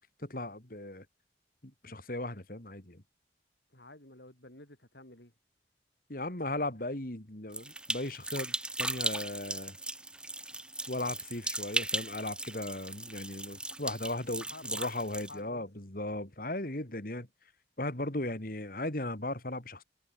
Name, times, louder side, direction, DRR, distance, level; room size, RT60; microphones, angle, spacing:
voice 1, 0.2-1.0 1.8-3.0 6.1-9.8 10.9-17.3 17.8-19.8, left 1 dB, 50° left, 2.9 m, -37 dB
voice 2, 3.7-5.3 14.4-14.8 15.3-15.7, left 2 dB, 65° left, 6.4 m, -51 dB
sound 1, 7.5-15.3, right 2 dB, 5° right, 3.5 m, -37 dB
head